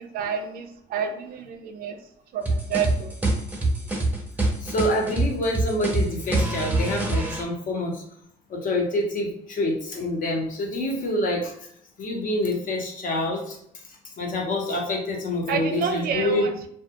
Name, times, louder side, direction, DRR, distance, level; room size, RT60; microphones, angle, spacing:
voice 1, 0.0-2.0 2.3-3.1 15.5-16.5, right 7 dB, 60° right, 7 dB, 0.4 m, -29 dB
sound 1, 2.5-7.4, right 2 dB, 10° right, 0.6 m, -25 dB
voice 2, 4.6-8.0 8.5-11.5 12.0-13.6 14.2-16.5, left 1 dB, 55° left, 0 dB, 0.8 m, -26 dB
2.3 x 2.2 x 2.8 m, 0.70 s
cardioid pair, 110°, 17 cm